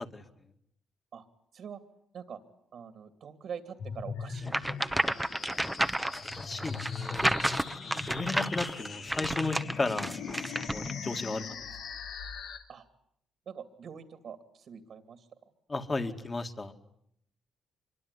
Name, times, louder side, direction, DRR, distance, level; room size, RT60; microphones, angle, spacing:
voice 1, 2.7-5.6 6.0-6.2 12.7-12.9 13.5-15.5, right 7 dB, 60° right, 10 dB, 2.6 m, -45 dB
sound 1, 3.8-12.6, left 5 dB, 75° left, 3.3 m, -40 dB
sound 2, 4.5-10.9, right 1 dB, 5° right, 1.1 m, -31 dB
voice 2, 6.4-7.3 7.8-10.1 10.7-11.5 15.7-16.7, left 3 dB, 25° left, 7 dB, 2.5 m, -34 dB
25.5 x 23.5 x 9.9 m, 0.73 s
cardioid pair, 90°, 0 cm